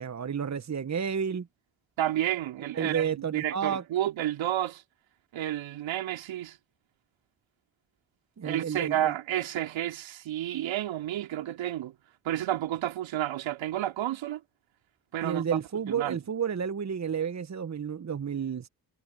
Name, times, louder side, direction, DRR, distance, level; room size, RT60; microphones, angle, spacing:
voice 1, 0.0-1.5 2.7-3.8 8.4-9.1 15.2-18.7, right 7 dB, 35° right, 1.4 m, -31 dB
voice 2, 2.0-4.8 5.3-6.6 8.4-11.9 12.2-14.4 15.1-15.4 15.9-16.2, right 12 dB, 65° right, 3.5 m, -31 dB
hypercardioid pair, 45°, 49 cm